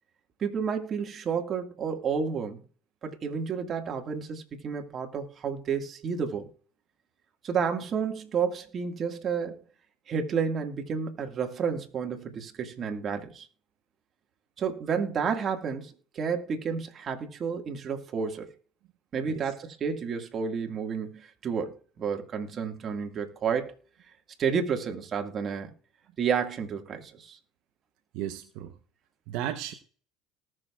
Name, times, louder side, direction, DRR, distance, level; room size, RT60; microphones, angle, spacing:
voice 1, 0.4-2.6 3.0-6.5 7.4-9.6 10.1-13.5 14.6-18.5 19.1-23.7 24.4-25.7 26.2-27.4, right 6 dB, 45° right, 1.9 m, -31 dB
voice 2, 28.1-28.7 29.3-29.7, right 11 dB, 70° right, 0.9 m, -34 dB
19.0 x 6.5 x 2.4 m
supercardioid pair, 90°, 0 cm